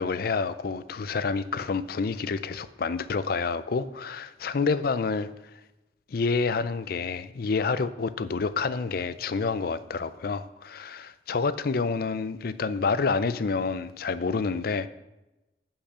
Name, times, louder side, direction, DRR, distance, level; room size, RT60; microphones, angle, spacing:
voice 1, 0.0-5.3 6.1-14.9, left 4 dB, 55° left, 14 dB, 0.5 m, -28 dB
8.6 x 5.6 x 5.6 m, 0.98 s
head